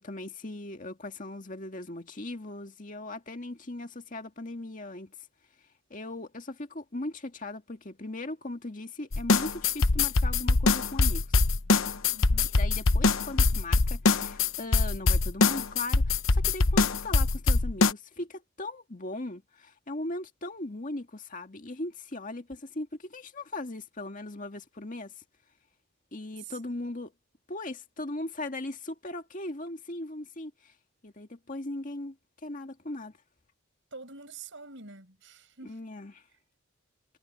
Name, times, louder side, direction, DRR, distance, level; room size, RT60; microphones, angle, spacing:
voice 1, 0.0-5.1 5.9-11.3 12.4-25.2 26.1-27.1 27.5-30.7 31.0-32.2 32.4-33.1 35.6-36.2, left 2 dB, 40° left, 2.0 m, -38 dB
sound 1, 9.1-17.9, left 3 dB, 80° left, 1.0 m, -23 dB
voice 2, 12.1-12.6 26.4-26.6 33.9-35.9, right 4 dB, 65° right, 7.6 m, -46 dB
head